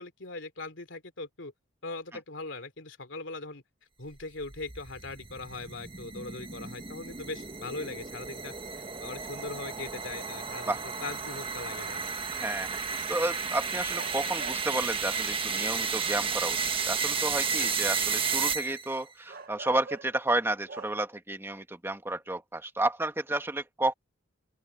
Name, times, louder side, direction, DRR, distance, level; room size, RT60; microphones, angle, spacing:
voice 1, 0.0-1.5 1.8-3.6 4.0-8.5 9.0-12.0 17.6-17.7, left 3 dB, 70° left, 3.3 m, -40 dB
sound 1, 4.2-19.0, right 5 dB, 30° right, 1.4 m, -33 dB
sound 2, 10.5-11.0 12.8-12.9 13.9-14.8 15.5-16.1 18.6-18.7 19.3-20.3 20.7-20.9, right 4 dB, 50° right, 1.1 m, -45 dB
voice 2, 12.4-12.7 13.1-16.6 16.9-23.9, right 2 dB, 10° right, 1.5 m, -31 dB
open air
head